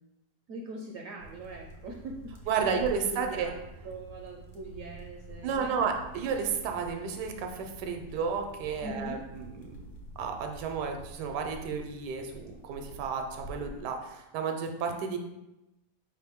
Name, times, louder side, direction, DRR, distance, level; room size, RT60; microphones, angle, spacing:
voice 1, 0.5-2.4 2.6-3.6 3.8-5.8 8.8-9.2, right 2 dB, 70° right, 1 dB, 0.8 m, -41 dB
sound 1, 1.2-13.8, right 1 dB, 75° left, 1.4 m, -48 dB
voice 2, 2.5-3.5 5.4-9.8 10.2-15.2, right 6 dB, 90° right, 4 dB, 1.2 m, -32 dB
4.8 x 3.2 x 3.5 m, 0.96 s
omnidirectional pair, 1.7 m